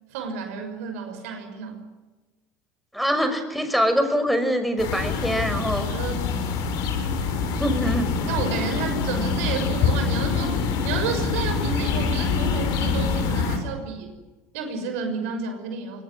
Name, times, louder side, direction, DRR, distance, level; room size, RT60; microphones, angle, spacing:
voice 1, 0.1-1.8 5.8-6.3 8.3-14.1 14.5-16.0, right 5 dB, 80° right, 6 dB, 6.3 m, -31 dB
voice 2, 2.9-5.9 7.6-8.1, equal, ahead, 6 dB, 5.9 m, -23 dB
sound 1, 4.8-13.6, left 5 dB, 65° left, 6.7 m, -25 dB
24.5 x 21.5 x 9.9 m, 1.2 s
hypercardioid pair, 80°, 8 cm